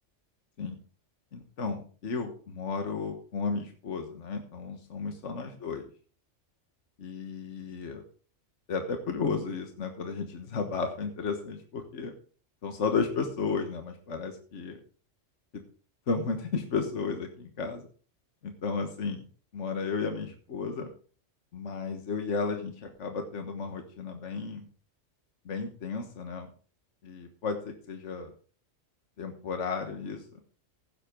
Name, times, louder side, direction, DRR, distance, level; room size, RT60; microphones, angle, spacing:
voice 1, 1.3-5.9 7.0-8.0 8.7-12.1 12.6-14.8 15.5-15.6 16.1-17.9 18.4-19.2 19.5-20.9 21.5-24.7 25.4-26.5 27.0-28.3 29.2-30.4, left 4 dB, 70° left, 5 dB, 1.7 m, -33 dB
16.0 x 7.8 x 3.7 m, 0.40 s
omnidirectional pair, 1.3 m